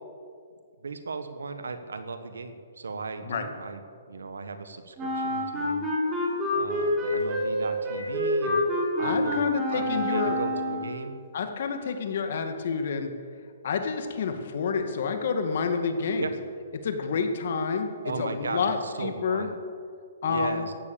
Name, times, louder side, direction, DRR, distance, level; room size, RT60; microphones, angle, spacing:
voice 1, 0.8-3.8 4.1-5.9 6.5-8.7 9.0-11.1 16.2-16.3 18.0-19.5 20.2-20.7, right 4 dB, 90° right, 9 dB, 1.4 m, -36 dB
Wind instrument woodwind instrument, 5.0-11.0, left 1 dB, 15° right, 4.6 m, -27 dB
voice 2, 9.0-10.4 11.3-13.1 13.6-16.3 16.8-17.9 18.2-19.5 20.2-20.7, left 5 dB, 60° left, 6 dB, 1.9 m, -29 dB
14.5 x 10.0 x 7.0 m, 2.2 s
hypercardioid pair, 145°, 0 cm